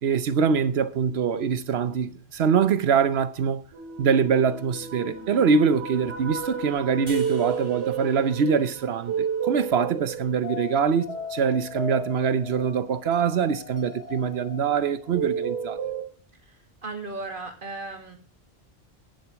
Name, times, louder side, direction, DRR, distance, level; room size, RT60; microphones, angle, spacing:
voice 1, 0.0-3.6 4.0-15.8, right 6 dB, 70° right, 1.1 m, -24 dB
sound 1, 3.7-16.0, right 5 dB, 90° right, 2.7 m, -33 dB
sound 2, 7.1-10.3, right 1 dB, 20° right, 4.0 m, -50 dB
voice 2, 16.8-18.1, right 3 dB, 50° right, 2.2 m, -35 dB
10.5 x 7.6 x 6.2 m
omnidirectional pair, 1.1 m